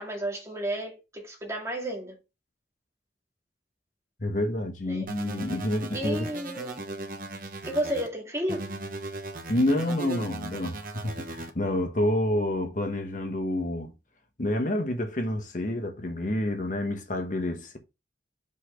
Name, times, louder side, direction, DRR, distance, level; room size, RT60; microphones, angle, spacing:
voice 1, 0.0-2.2 4.9-5.1 5.9-6.8 7.6-8.7, right 1 dB, 15° right, 2.1 m, -32 dB
voice 2, 4.2-6.3 9.5-13.9 14.4-17.8, left 1 dB, 45° left, 1.1 m, -28 dB
sound 1, 5.1-8.1 8.5-11.5, right 2 dB, 50° right, 1.3 m, -38 dB
5.5 x 4.2 x 5.0 m
head